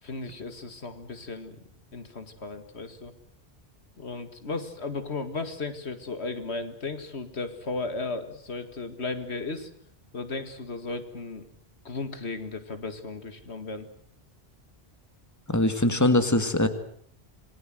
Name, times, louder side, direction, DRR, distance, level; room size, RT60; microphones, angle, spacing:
voice 1, 0.0-1.6 1.9-3.1 4.0-9.7 10.1-11.5 11.8-13.9, left 3 dB, 80° left, 9 dB, 2.3 m, -35 dB
voice 2, 15.5-16.7, left 1 dB, 15° left, 9 dB, 1.9 m, -22 dB
27.0 x 21.0 x 7.8 m, 0.64 s
omnidirectional pair, 1.1 m